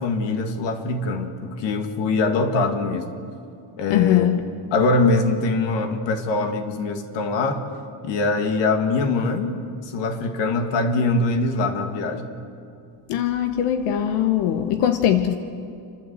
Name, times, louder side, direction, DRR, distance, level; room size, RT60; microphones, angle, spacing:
voice 1, 0.0-3.1 3.8-4.3 4.7-7.6 8.0-9.5 9.9-12.3, left 3 dB, 55° left, 6 dB, 2.0 m, -23 dB
voice 2, 3.9-4.4 13.1-15.3, left 10 dB, 85° left, 8 dB, 1.1 m, -21 dB
28.5 x 12.0 x 8.2 m, 2.5 s
cardioid pair, 180°, 50 cm